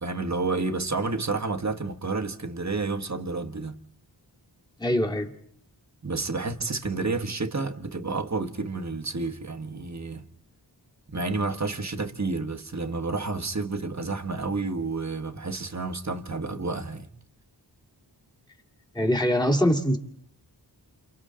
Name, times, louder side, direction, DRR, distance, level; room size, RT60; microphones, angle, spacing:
voice 1, 0.0-3.8 6.0-10.2 11.1-17.1, right 3 dB, 40° right, 1.5 m, -30 dB
voice 2, 4.8-5.3 18.9-20.0, equal, 10° left, 2.4 m, -23 dB
29.5 x 28.5 x 3.8 m
wide cardioid pair, 90°, 42 cm